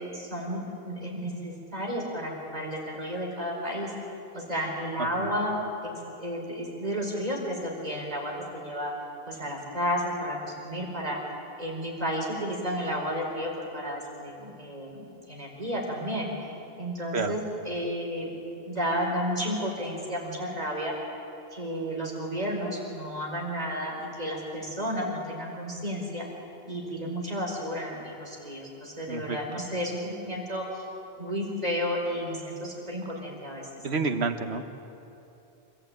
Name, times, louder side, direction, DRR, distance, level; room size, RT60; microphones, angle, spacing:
voice 1, 0.0-3.9 4.3-8.9 9.3-11.2 11.6-16.3 16.7-18.3 18.6-20.9 21.5-26.2 26.7-30.8 31.2-33.7, equal, 40° right, -2 dB, 4.7 m, -32 dB
voice 2, 33.8-34.7, right 4 dB, 85° right, 7 dB, 1.5 m, -29 dB
26.0 x 14.5 x 8.9 m, 2.8 s
omnidirectional pair, 1.1 m